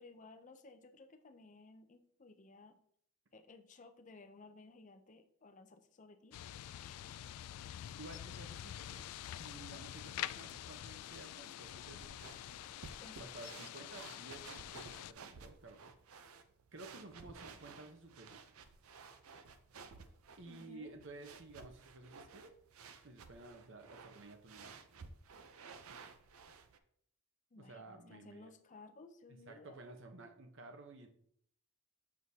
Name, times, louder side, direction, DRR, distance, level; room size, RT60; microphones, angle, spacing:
voice 1, 0.0-2.8 3.3-7.0 13.0-13.6 20.5-20.9 27.5-29.8, left 3 dB, 35° left, 7 dB, 0.5 m, -58 dB
sound 1, 6.3-15.1, left 12 dB, 90° left, 0.3 m, -47 dB
voice 2, 8.0-12.4 13.2-15.9 16.7-18.4 20.4-22.5 23.0-24.8 27.6-28.5 29.5-31.1, right 2 dB, 55° right, 5 dB, 0.9 m, -53 dB
sound 2, 12.0-26.8, right 5 dB, 75° right, 0.6 m, -55 dB
7.3 x 6.2 x 2.8 m, 0.67 s
head